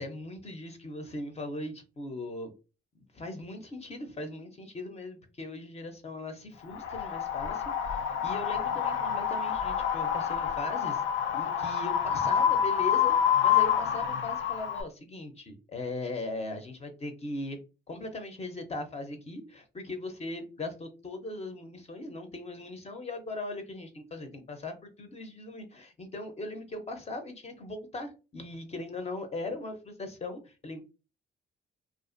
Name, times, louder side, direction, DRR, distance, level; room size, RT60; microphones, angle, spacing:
voice 1, 0.0-2.5 3.1-11.0 11.3-13.2 13.4-17.6 17.9-30.8, left 2 dB, 30° left, 0.6 m, -39 dB
Wind, 6.7-14.8, left 8 dB, 85° left, 0.4 m, -27 dB
2.4 x 2.3 x 2.5 m
cardioid pair, 90°, 20 cm